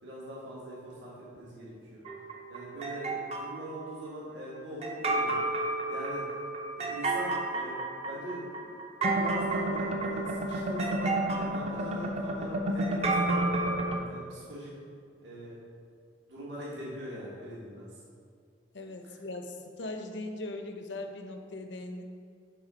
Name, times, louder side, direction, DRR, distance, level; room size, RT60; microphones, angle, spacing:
voice 1, 0.0-2.0 2.5-5.4 5.9-6.2 6.8-7.8 8.1-8.8 9.1-13.4 14.0-14.7 15.2-15.6 16.3-17.9 19.0-19.1, right 1 dB, 65° right, -7 dB, 1.7 m, -41 dB
sound 1, 2.0-3.6 4.8-14.0, right 2 dB, 35° right, 0.7 m, -30 dB
voice 2, 18.7-22.0, left 2 dB, 65° left, 5 dB, 0.8 m, -39 dB
10.0 x 4.0 x 5.0 m, 2.2 s
head